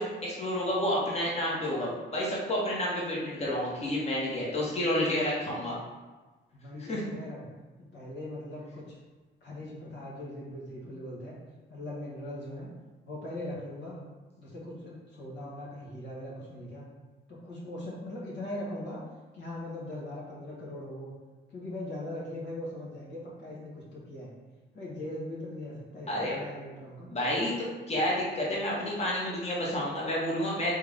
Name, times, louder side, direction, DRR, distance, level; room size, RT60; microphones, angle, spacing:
voice 1, 0.0-5.8 6.8-7.0 26.1-26.3 27.1-27.5 27.9-30.7, left 1 dB, 30° left, -5 dB, 1.3 m, -30 dB
voice 2, 6.5-7.6 7.9-9.0 9.4-11.4 11.7-12.7 13.0-14.0 14.4-16.9 17.3-19.0 19.3-21.1 21.5-24.3 24.7-27.1, left 1 dB, 65° left, -6 dB, 1.4 m, -40 dB
3.6 x 3.5 x 3.5 m, 1.2 s
cardioid pair, 90°, 20 cm